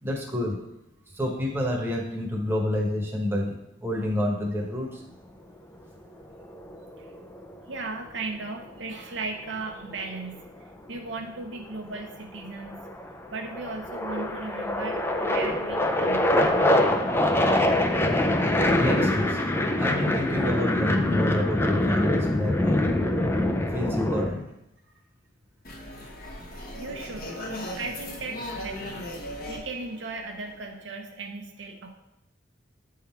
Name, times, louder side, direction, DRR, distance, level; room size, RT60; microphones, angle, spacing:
voice 1, 0.0-0.6 1.1-5.0 18.8-19.4 19.8-23.0 23.5-24.4, left 1 dB, 10° right, -1 dB, 1.0 m, -29 dB
sound 1, 6.4-7.5 9.4-10.6 11.6-12.1 12.4-24.3, left 1 dB, 10° left, 0.4 m, -24 dB
voice 2, 7.7-10.5 10.9-12.8 13.3-16.7 26.8-29.1 29.5-31.9, right 3 dB, 70° right, 2 dB, 0.8 m, -37 dB
sound 2, 25.6-30.8, left 1 dB, 50° left, 1.1 m, -38 dB
8.4 x 3.7 x 4.4 m, 0.85 s
head